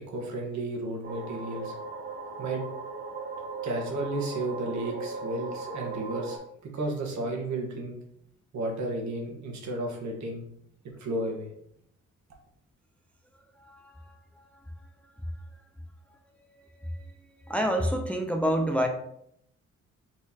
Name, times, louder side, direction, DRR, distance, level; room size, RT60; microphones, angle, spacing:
voice 1, 0.0-1.8 2.4-2.6 3.6-8.0 8.5-10.5 11.0-11.5, right 1 dB, 70° right, 1 dB, 1.3 m, -33 dB
sound 1, 1.0-6.4, right 4 dB, 30° right, 0.9 m, -38 dB
voice 2, 13.6-14.1 16.8-17.1 17.4-18.9, equal, 5° left, 3 dB, 0.6 m, -28 dB
4.4 x 4.2 x 2.8 m, 0.74 s
cardioid pair, 90°, 30 cm